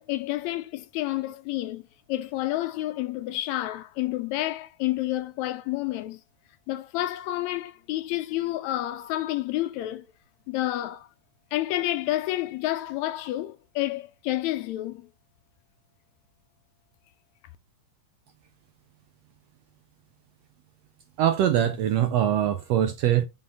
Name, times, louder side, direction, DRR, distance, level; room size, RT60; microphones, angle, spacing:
voice 1, 0.0-1.8 2.1-6.2 6.7-10.1 10.5-11.1 11.5-15.1, left 15 dB, 80° left, 1.8 m, -29 dB
voice 2, 21.2-23.2, right 10 dB, 80° right, 1.5 m, -23 dB
6.4 x 3.8 x 4.1 m
omnidirectional pair, 3.4 m